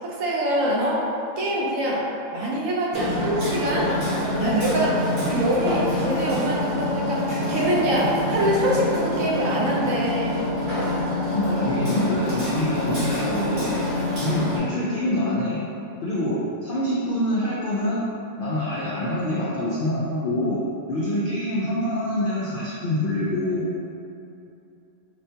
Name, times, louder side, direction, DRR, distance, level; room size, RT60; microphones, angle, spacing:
voice 1, 0.0-1.1 1.4-2.0 2.3-4.0 4.4-10.4, right 1 dB, 70° right, -4 dB, 1.1 m, -24 dB
Hammer, 2.9-14.6, left 1 dB, 50° right, 1.4 m, -26 dB
voice 2, 11.3-13.9 14.2-15.6 16.0-18.0 18.4-20.6 20.9-23.7, left 1 dB, 70° left, -8 dB, 0.5 m, -25 dB
5.1 x 2.2 x 2.7 m, 2.7 s
omnidirectional pair, 1.5 m